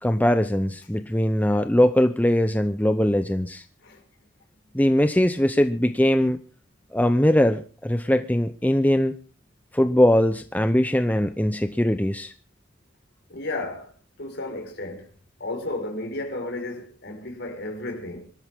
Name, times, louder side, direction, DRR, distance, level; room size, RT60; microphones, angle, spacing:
voice 1, 0.0-3.6 4.7-6.4 6.9-9.1 9.7-12.3, left 1 dB, 10° left, 0.8 m, -21 dB
voice 2, 13.3-13.9 14.2-15.1 15.4-18.3, left 2 dB, 55° left, 5.3 m, -33 dB
25.5 x 13.0 x 3.7 m
head